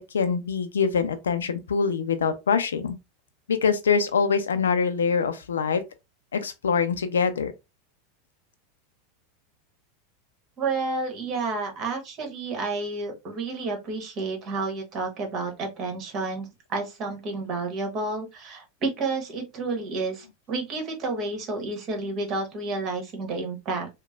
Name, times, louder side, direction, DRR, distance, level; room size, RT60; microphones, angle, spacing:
voice 1, 0.0-3.0 3.5-5.8 6.3-7.5, left 6 dB, 85° left, 0.3 m, -24 dB
voice 2, 10.6-23.9, right 3 dB, 45° right, 1.2 m, -30 dB
2.9 x 2.1 x 2.4 m
hypercardioid pair, 95°, 0 cm